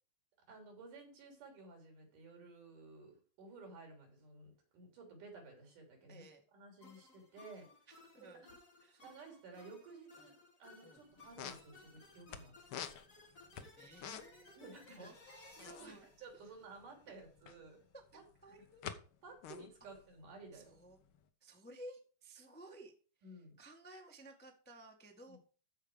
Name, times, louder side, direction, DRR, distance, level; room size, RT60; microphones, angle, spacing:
voice 1, 0.5-6.2 6.5-7.7 8.2-8.5 9.0-10.3 10.6-12.5 14.6-15.1 15.6-17.8 18.1-18.6 19.2-20.8 23.2-23.6 25.3-25.4, right 3 dB, 85° right, 2 dB, 4.7 m, -54 dB
voice 2, 6.1-6.4 8.1-8.5 8.8-9.3 10.2-10.3 10.8-11.0 13.5-16.1 16.3-16.4 17.9-18.8 20.5-21.0 21.4-22.9 23.2-25.4, right 1 dB, 10° left, 2 dB, 0.5 m, -56 dB
sound 1, 6.8-17.2, left 3 dB, 25° left, 2.5 m, -61 dB
sound 2, 11.0-11.1 11.2-12.4 12.7-14.5 14.7-14.9 15.2-17.7 18.2-19.0 19.3-21.2, left 8 dB, 75° left, 1.2 m, -47 dB
14.0 x 4.9 x 4.9 m, 0.38 s
omnidirectional pair, 3.6 m